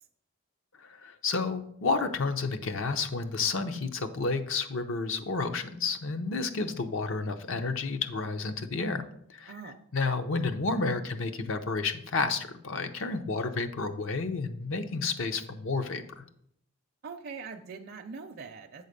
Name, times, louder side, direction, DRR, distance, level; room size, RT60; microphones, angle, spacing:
voice 1, 0.8-9.0 9.3-16.2, left 4 dB, 65° left, 8 dB, 0.7 m, -31 dB
voice 2, 9.5-9.8 17.0-18.9, right 5 dB, 50° right, 3 dB, 0.5 m, -42 dB
8.2 x 4.0 x 6.6 m, 0.72 s
head